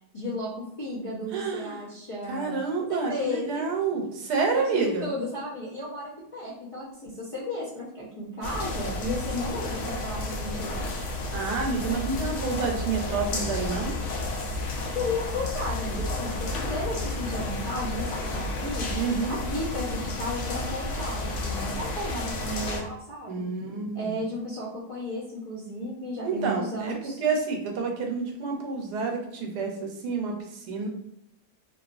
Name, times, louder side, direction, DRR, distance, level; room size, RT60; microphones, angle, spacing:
voice 1, 0.1-2.6 2.9-3.6 4.5-11.1 14.9-18.9 19.3-23.5 23.9-27.2, left 1 dB, 40° left, -9 dB, 0.5 m, -34 dB
voice 2, 1.3-1.8 2.3-5.1 11.3-13.9 18.9-19.4 23.3-24.2 26.2-30.9, right 4 dB, 90° right, 1 dB, 1.2 m, -29 dB
sound 1, 8.4-22.8, left 2 dB, 70° left, 0.7 m, -31 dB
2.8 x 2.4 x 2.4 m, 0.75 s
omnidirectional pair, 1.7 m